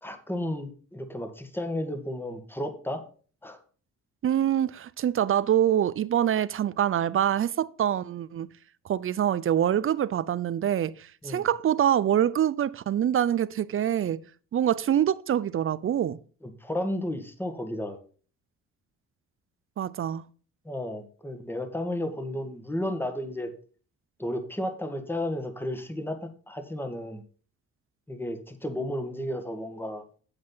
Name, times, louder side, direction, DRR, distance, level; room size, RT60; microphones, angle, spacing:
voice 1, 0.0-3.0 3.4-3.6 11.2-11.4 16.4-18.0 20.6-23.5 24.2-26.2 26.5-27.2 28.1-30.0, left 1 dB, 5° left, 1.7 m, -33 dB
voice 2, 4.2-8.5 8.8-14.2 14.5-16.2 19.8-20.2, right 10 dB, 45° right, 0.6 m, -25 dB
8.7 x 7.9 x 4.0 m
cardioid pair, 90°, 30 cm